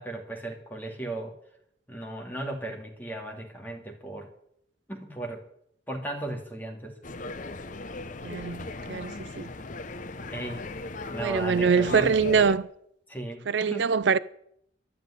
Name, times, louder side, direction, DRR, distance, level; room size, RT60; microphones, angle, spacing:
voice 1, 0.0-1.3 1.9-4.3 4.9-5.4 5.9-6.9 10.3-10.7 11.1-12.1 13.1-13.9, right 2 dB, 10° left, 2.5 m, -36 dB
sound 1, 7.0-12.6, left 2 dB, 45° left, 0.9 m, -37 dB
voice 2, 8.2-9.5 11.2-12.7 13.5-14.2, right 5 dB, 70° right, 0.5 m, -24 dB
12.5 x 9.0 x 9.9 m
head